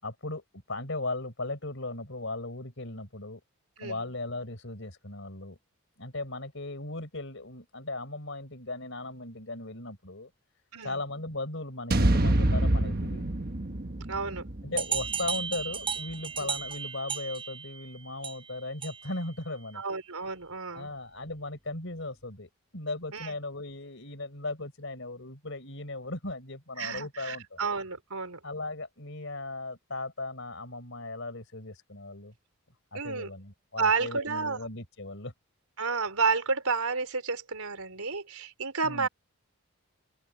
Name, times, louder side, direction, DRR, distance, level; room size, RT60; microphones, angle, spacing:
voice 1, 0.0-3.4 3.8-5.6 6.0-10.3 10.8-13.3 14.6-19.8 20.7-27.6 28.4-32.3 32.9-35.3 38.8-39.1, left 2 dB, 55° left, 5.1 m, -37 dB
sound 1, 11.9-16.1, right 1 dB, 45° right, 1.3 m, -27 dB
voice 2, 14.1-14.4 16.4-16.5 19.7-20.9 23.1-23.3 26.8-28.4 32.9-33.3 33.8-34.6 35.8-39.1, right 4 dB, 80° right, 4.0 m, -31 dB
sound 2, 14.8-19.3, right 7 dB, 25° right, 6.9 m, -35 dB
open air
head